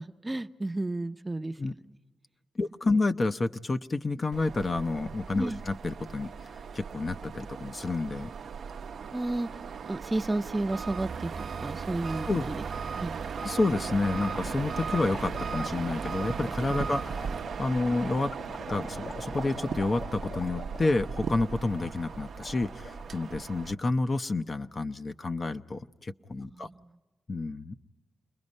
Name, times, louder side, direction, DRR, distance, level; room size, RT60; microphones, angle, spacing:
voice 1, 0.0-1.6 5.4-5.6 9.1-9.5 9.9-13.2 26.4-26.9, right 2 dB, 20° right, 9 dB, 0.7 m, -32 dB
voice 2, 2.6-6.3 6.7-8.3 12.3-12.5 13.4-18.3 18.7-26.7 27.3-27.8, left 3 dB, 40° left, 9 dB, 0.7 m, -29 dB
sound 1, 4.3-23.7, right 6 dB, 75° right, 0.7 m, -38 dB
Engine, 10.7-17.4, right 5 dB, 60° right, 1.3 m, -39 dB
sound 2, 12.6-23.8, left 2 dB, 60° left, 1.2 m, -44 dB
29.5 x 21.0 x 5.4 m, 1.2 s
cardioid pair, 75°, 0 cm